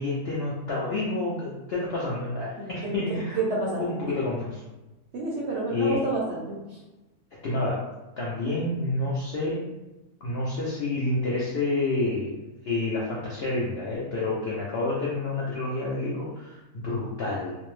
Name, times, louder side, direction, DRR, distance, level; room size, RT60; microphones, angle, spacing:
voice 1, 0.0-3.4 3.8-4.6 5.7-6.0 7.4-7.8 8.2-9.6 10.2-17.6, left 2 dB, 75° left, -5 dB, 0.5 m, -29 dB
voice 2, 2.6-2.9 3.4-4.2 5.1-6.4, right 2 dB, 65° right, -4 dB, 0.7 m, -29 dB
2.6 x 2.0 x 3.1 m, 1.0 s
omnidirectional pair, 1.6 m